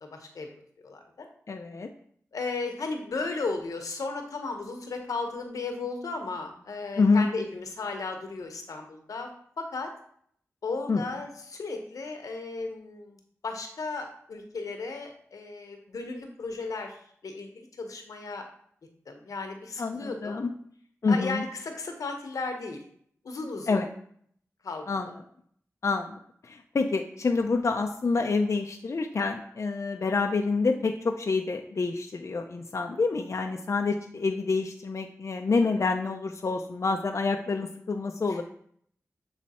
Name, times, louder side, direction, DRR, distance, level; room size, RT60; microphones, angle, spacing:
voice 1, 0.0-0.5 0.8-1.3 2.3-9.3 9.6-9.9 10.6-13.2 13.4-17.5 17.8-18.5 19.1-20.5 21.1-22.8 23.2-23.8 24.6-25.2 38.3-38.4, left 3 dB, 90° left, 4 dB, 0.9 m, -35 dB
voice 2, 1.5-1.9 7.0-7.3 10.9-11.0 19.8-20.5 21.0-21.4 23.7-23.9 24.9-25.1 25.8-26.2 26.4-38.4, left 4 dB, 60° left, 3 dB, 0.5 m, -27 dB
7.4 x 3.2 x 4.2 m, 0.62 s
cardioid pair, 50°, 6 cm